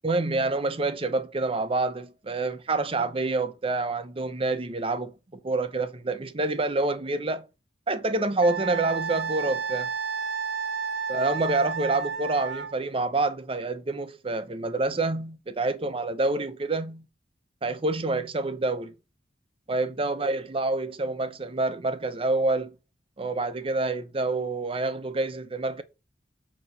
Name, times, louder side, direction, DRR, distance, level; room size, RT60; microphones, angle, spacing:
voice 1, 0.0-7.5 7.9-9.9 11.1-17.1 17.6-18.9 19.7-22.7 23.2-25.8, right 2 dB, 30° right, 0.7 m, -27 dB
Wind instrument woodwind instrument, 8.4-12.7, right 5 dB, 80° right, 0.8 m, -31 dB
8.1 x 3.0 x 6.0 m
head